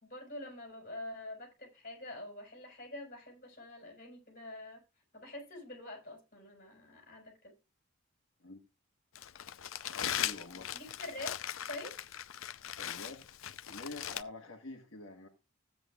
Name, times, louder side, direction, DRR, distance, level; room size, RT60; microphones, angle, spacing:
voice 1, 0.0-4.8 5.1-7.5 10.5-11.3 11.7-11.9, left 1 dB, 45° left, 4.6 m, -46 dB
Crumpling crinkling, 9.1-14.2, left 10 dB, 85° left, 0.6 m, -39 dB
voice 2, 10.0-10.7 12.8-13.3 13.7-15.3, left 2 dB, 70° left, 1.6 m, -47 dB
15.0 x 8.6 x 2.4 m
head